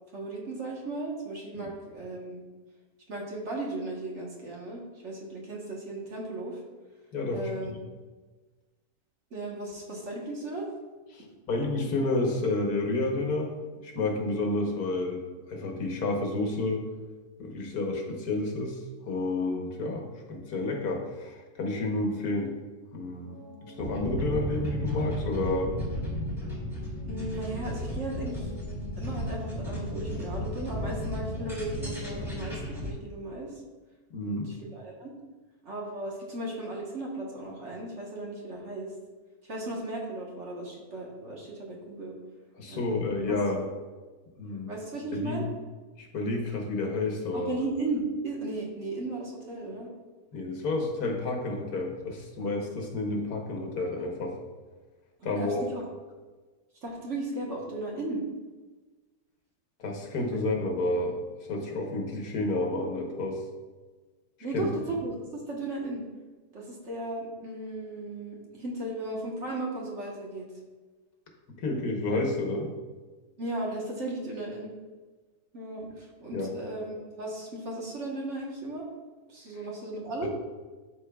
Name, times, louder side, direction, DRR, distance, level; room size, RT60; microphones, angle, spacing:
voice 1, 0.1-2.4 3.1-6.6 7.3-7.7 9.3-10.7 27.0-28.5 29.0-33.6 34.2-35.1 35.6-38.9 39.4-42.1 42.7-43.4 44.4-45.4 47.3-49.9 55.2-55.9 56.8-58.2 64.4-66.0 66.5-70.5 73.4-74.7 75.5-78.9 79.3-80.3, right 2 dB, 50° right, -2 dB, 1.4 m, -36 dB
voice 2, 7.1-7.8 11.1-13.5 13.8-15.2 15.5-16.9 17.4-22.5 22.9-23.3 23.6-25.8 34.1-34.5 42.6-43.6 44.4-44.7 45.1-45.4 46.0-47.6 50.3-54.4 55.2-55.6 59.8-63.4 64.5-64.6 71.6-72.7 76.3-76.5 80.2-80.3, left 2 dB, 75° left, 1 dB, 1.5 m, -30 dB
sound 1, 23.2-32.7, left 1 dB, 70° right, 2.7 m, -46 dB
sound 2, 23.8-32.9, equal, ahead, 1.5 m, -34 dB
11.5 x 4.3 x 2.3 m, 1.3 s
omnidirectional pair, 1.7 m